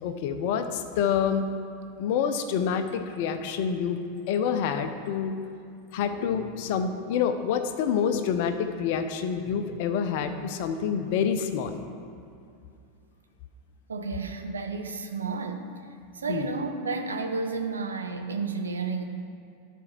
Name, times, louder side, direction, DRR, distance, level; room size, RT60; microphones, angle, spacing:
voice 1, 0.0-1.4 2.0-4.0 4.3-5.3 5.9-11.8 16.3-16.5, left 7 dB, 55° left, 8 dB, 0.7 m, -27 dB
voice 2, 13.9-15.7 16.1-19.0, right 4 dB, 80° right, 5 dB, 0.8 m, -31 dB
12.0 x 4.5 x 5.9 m, 2.5 s
figure-of-eight pair, 90°, 0 cm